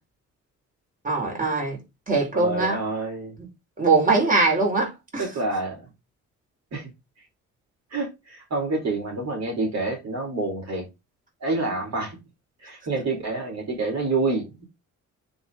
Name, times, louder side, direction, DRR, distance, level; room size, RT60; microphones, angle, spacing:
voice 1, 1.0-1.8 2.1-2.8 3.8-5.2, right 3 dB, 25° right, 4.9 m, -22 dB
voice 2, 2.3-3.3 5.2-5.9 6.7-6.9 7.9-10.9 11.4-12.2 12.6-14.6, right 3 dB, 60° right, 4.2 m, -28 dB
9.6 x 4.9 x 3.8 m
cardioid pair, 90°, 30 cm